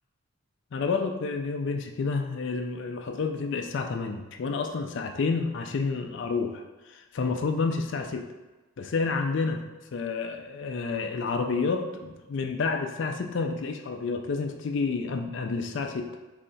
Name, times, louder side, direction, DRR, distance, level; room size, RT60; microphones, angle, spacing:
voice 1, 0.7-6.6 6.9-8.3 8.8-9.6 9.9-16.1, left 4 dB, 60° left, 4 dB, 0.4 m, -29 dB
3.2 x 2.8 x 4.0 m, 1.2 s
head